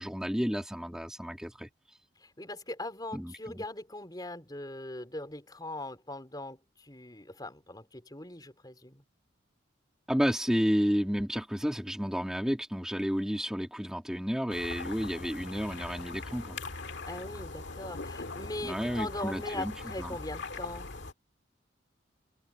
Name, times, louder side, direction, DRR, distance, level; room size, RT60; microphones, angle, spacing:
voice 1, 0.0-2.0 3.1-3.6 10.1-16.6 18.6-19.7 20.0-20.1, equal, 5° right, 2.3 m, -31 dB
voice 2, 2.2-9.0 17.1-21.0, left 2 dB, 20° left, 4.3 m, -40 dB
sound 1, 14.5-21.1, left 3 dB, 70° left, 1.8 m, -41 dB
head